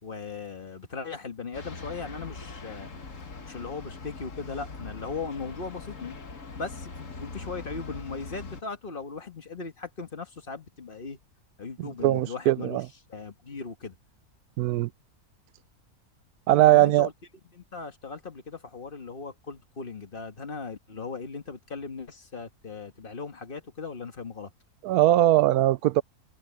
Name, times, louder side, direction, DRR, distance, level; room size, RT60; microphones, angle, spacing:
voice 1, 0.0-2.9 3.4-6.2 6.6-11.2 11.6-12.8 13.1-13.9 16.5-17.1 17.5-24.5, left 4 dB, 35° left, 1.7 m, -38 dB
sound 1, 1.5-8.6, left 3 dB, 55° left, 2.1 m, -41 dB
voice 2, 11.8-12.9 14.6-14.9 16.5-17.1 24.8-26.0, right 14 dB, 80° right, 1.1 m, -21 dB
open air
omnidirectional pair, 1.6 m